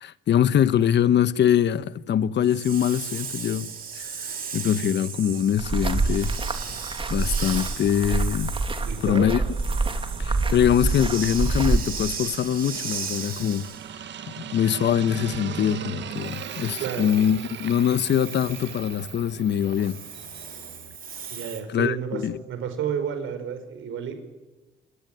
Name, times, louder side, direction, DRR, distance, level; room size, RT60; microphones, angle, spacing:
voice 1, 0.0-3.7 4.0-6.3 7.1-8.5 9.0-9.4 10.2-13.7 14.3-20.0 21.7-22.4, left 9 dB, 60° left, 1.2 m, -23 dB
Hiss, 2.4-13.9 16.2-21.6, right 6 dB, 45° right, 4.7 m, -37 dB
sound 1, 5.6-11.8, right 3 dB, 25° right, 2.8 m, -26 dB
voice 2, 8.9-9.3 16.8-17.1 21.3-22.2 22.5-24.2, right 8 dB, 80° right, 5.6 m, -31 dB
sound 2, 9.4-21.0, right 9 dB, 65° right, 1.7 m, -40 dB
28.0 x 22.5 x 9.4 m
cardioid pair, 90°, 20 cm